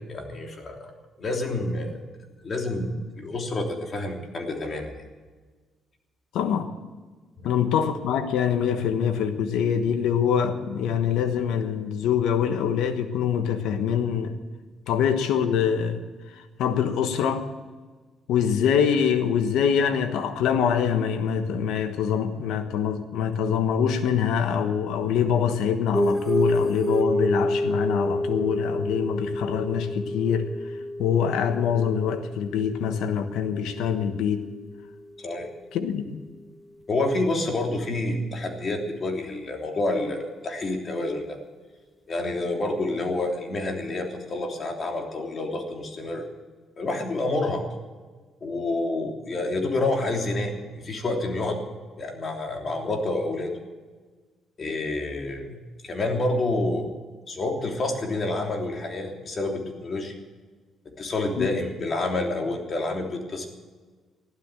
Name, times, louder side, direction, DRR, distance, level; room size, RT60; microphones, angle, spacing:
voice 1, 0.1-0.9 1.2-2.0 2.4-5.0 7.4-7.5 35.2-35.5 36.9-41.4 42.1-46.3 46.8-47.6 48.4-51.6 52.0-53.5 54.6-56.9 57.3-60.2 61.0-63.5, left 2 dB, 40° left, 2 dB, 3.3 m, -28 dB
voice 2, 6.3-6.7 7.4-14.3 14.9-16.0 16.6-17.5 18.3-30.5 31.0-34.4 35.7-36.2 61.4-61.5, left 8 dB, 90° left, 8 dB, 1.3 m, -24 dB
sound 1, 25.9-34.9, equal, 5° right, 0.7 m, -29 dB
15.0 x 12.0 x 7.5 m, 1.4 s
cardioid pair, 90°, 0 cm